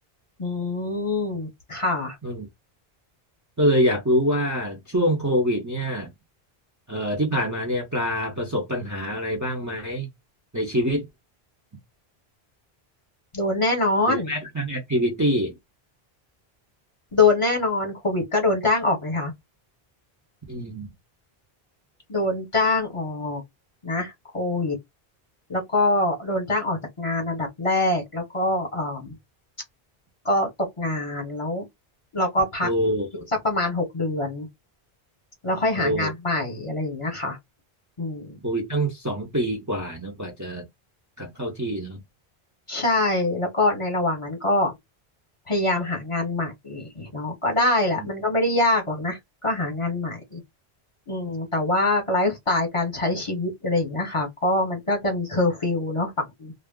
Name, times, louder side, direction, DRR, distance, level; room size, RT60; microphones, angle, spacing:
voice 1, 0.4-2.2 13.3-14.3 17.1-19.3 22.1-23.4 23.8-24.8 25.5-29.1 30.2-31.6 32.1-32.7 33.4-34.5 35.4-37.4 38.0-38.4 42.7-44.7 45.5-50.4 51.1-56.5, left 2 dB, 30° left, 1.0 m, -24 dB
voice 2, 3.6-6.1 6.9-10.1 10.5-11.1 14.1-15.6 20.5-20.9 32.6-33.3 35.8-36.1 38.4-40.6 41.2-42.0 48.0-48.1, equal, 20° right, 0.7 m, -25 dB
2.4 x 2.0 x 3.5 m
omnidirectional pair, 1.0 m